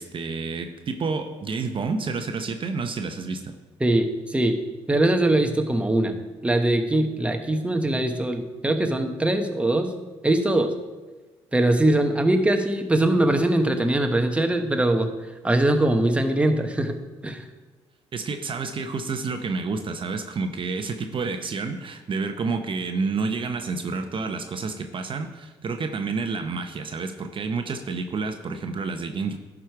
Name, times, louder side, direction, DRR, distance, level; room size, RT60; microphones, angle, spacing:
voice 1, 0.0-3.5 18.1-29.4, right 4 dB, 45° right, 6 dB, 0.7 m, -29 dB
voice 2, 3.8-4.6 4.9-6.2 6.4-9.9 10.2-10.7 11.5-15.1 15.4-17.0 17.2-17.4, right 1 dB, 10° right, 5 dB, 1.0 m, -22 dB
11.0 x 4.9 x 4.7 m, 1.2 s
supercardioid pair, 65°, 12 cm